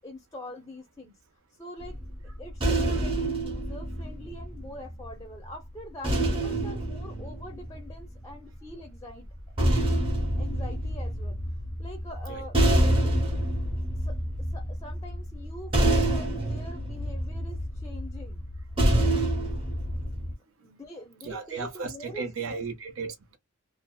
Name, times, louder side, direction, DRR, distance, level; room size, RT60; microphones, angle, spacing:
voice 1, 0.0-1.2 1.6-2.0 2.4-9.3 10.2-11.4 11.8-12.6 14.0-14.2 14.5-18.4 20.6-22.6, left 1 dB, 15° left, 0.5 m, -44 dB
sound 1, 1.8-5.1 6.0-8.3 9.3-20.3, right 1 dB, 25° right, 0.8 m, -27 dB
voice 2, 21.2-23.4, right 4 dB, 65° right, 0.6 m, -35 dB
2.6 x 2.1 x 2.2 m
head